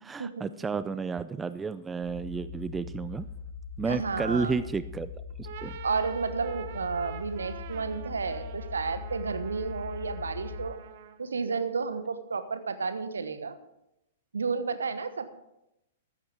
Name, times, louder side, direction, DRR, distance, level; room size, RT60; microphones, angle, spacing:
voice 1, 0.0-3.3 3.8-5.1 5.4-5.7, right 5 dB, 15° right, 15 dB, 0.4 m, -32 dB
sound 1, 2.0-10.7, left 6 dB, 65° left, 4.8 m, -41 dB
voice 2, 3.9-4.5 5.8-10.8 11.2-13.6 14.3-15.3, right 5 dB, 70° right, 11 dB, 1.2 m, -32 dB
sound 2, 5.3-11.3, right 8 dB, 50° right, 1.0 m, -46 dB
14.5 x 13.0 x 3.5 m, 0.85 s
figure-of-eight pair, 110°, 0 cm